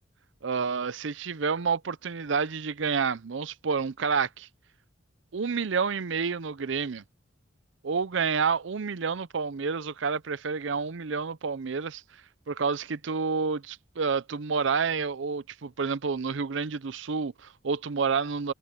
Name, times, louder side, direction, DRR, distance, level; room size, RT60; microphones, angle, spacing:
voice 1, 0.4-4.5 5.3-7.0 7.8-12.0 12.5-18.5, right 5 dB, 75° right, 0.6 m, -29 dB
head